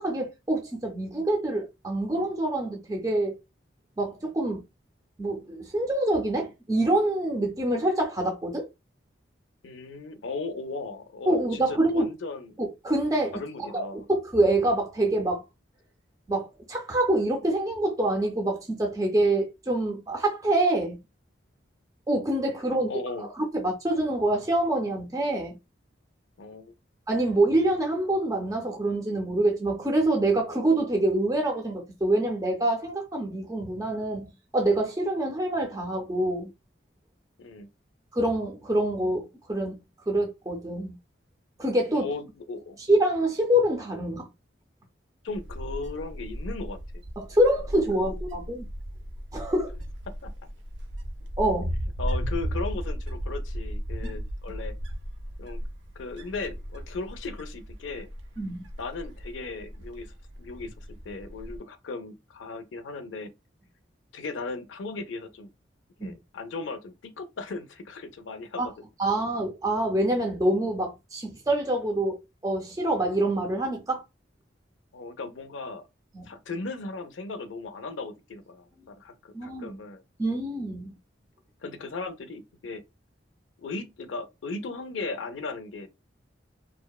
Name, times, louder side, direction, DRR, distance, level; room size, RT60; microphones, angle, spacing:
voice 1, 0.0-3.3 4.0-4.6 5.2-8.6 11.3-12.1 12.8-13.4 13.7-15.4 16.3-21.0 22.1-22.9 23.4-25.5 27.1-34.3 34.5-36.5 38.1-39.8 40.1-41.0 41.6-42.1 42.9-44.3 47.2-48.6 49.3-49.7 51.4-51.7 54.0-54.1 58.4-58.6 66.0-66.2 68.6-68.7 69.0-72.2 72.4-74.0 76.1-76.3 79.3-79.8 80.2-80.9, right 1 dB, 20° right, 0.4 m, -26 dB
voice 2, 9.6-12.6 13.3-14.1 22.9-23.3 26.4-26.7 37.4-37.7 41.9-42.8 45.2-47.0 50.1-50.3 52.0-54.7 55.4-55.6 56.0-58.1 58.8-60.1 60.4-63.3 64.1-65.5 66.0-68.7 74.9-75.8 76.2-80.0 81.6-82.9 83.6-85.9, left 3 dB, 85° left, 0.5 m, -37 dB
Wind, 45.3-61.6, equal, 75° right, 0.5 m, -35 dB
2.6 x 2.1 x 2.3 m
head